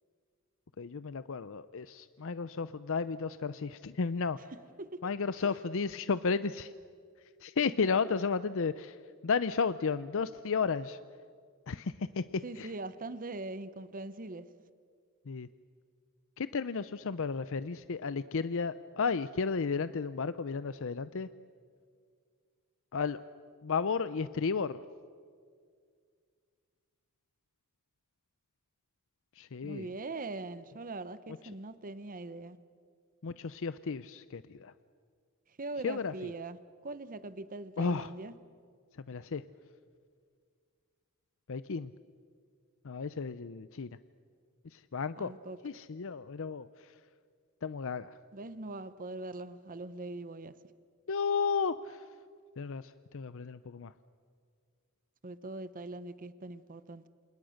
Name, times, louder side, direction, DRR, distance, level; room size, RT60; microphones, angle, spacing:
voice 1, 0.8-4.4 5.0-6.7 7.4-9.0 9.2-11.0 11.7-12.2 12.6-12.7 15.3-15.5 16.4-21.3 22.9-23.2 23.6-24.8 29.3-29.9 33.2-34.7 35.8-36.3 37.8-38.1 39.1-39.4 41.5-41.9 42.8-43.9 44.6-45.3 45.6-47.0 47.6-48.2 51.1-52.1 52.6-53.9, left 5 dB, 65° left, 0.6 m, -33 dB
voice 2, 12.4-14.5 29.6-32.6 35.6-38.3 45.2-45.6 48.3-50.5 55.2-57.1, right 2 dB, 40° right, 0.9 m, -41 dB
28.5 x 27.5 x 6.5 m
head